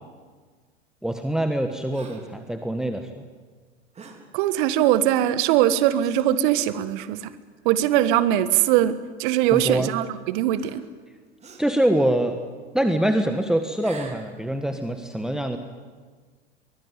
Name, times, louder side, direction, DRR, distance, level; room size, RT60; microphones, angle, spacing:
voice 1, 1.0-3.1 9.5-9.9 11.6-12.4 12.7-15.6, right 1 dB, ahead, 7 dB, 1.5 m, -24 dB
Gasp, 1.9-2.4 3.9-4.3 5.1-5.4 6.0-6.3 7.0-7.1 8.2-8.3 9.5-10.2 10.5-11.0 11.4-11.8 13.7-14.3, right 4 dB, 20° right, 4.3 m, -44 dB
voice 2, 4.3-7.3 7.7-10.8, right 12 dB, 50° right, 13 dB, 1.6 m, -21 dB
23.0 x 20.5 x 9.6 m, 1.5 s
figure-of-eight pair, 85°, 32 cm